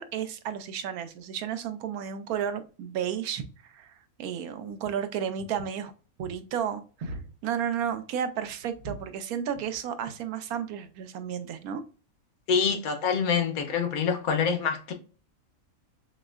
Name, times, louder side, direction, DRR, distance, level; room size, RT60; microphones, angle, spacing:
voice 1, 0.0-5.9 6.2-11.8, right 8 dB, 90° right, 1.1 m, -33 dB
sound 1, 4.7-4.9 5.4-5.9 6.2-6.4 7.0-7.5 7.8-8.0 8.4-9.1 9.5-9.8 10.1-10.2 11.0-11.2, right 1 dB, 50° right, 1.1 m, -42 dB
voice 2, 12.5-14.9, left 6 dB, 80° left, 1.3 m, -26 dB
6.2 x 2.1 x 2.4 m
omnidirectional pair, 1.5 m